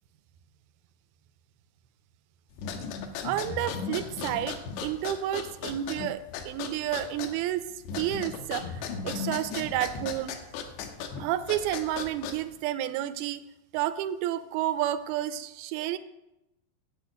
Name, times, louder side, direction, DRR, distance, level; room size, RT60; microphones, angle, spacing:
sound 1, 2.5-12.6, left 6 dB, 85° left, 3.1 m, -37 dB
voice 1, 3.2-7.7 8.0-10.4 11.2-13.4 13.7-16.0, right 12 dB, 80° right, 12 dB, 2.4 m, -31 dB
10.5 x 6.5 x 8.4 m, 0.91 s
omnidirectional pair, 4.7 m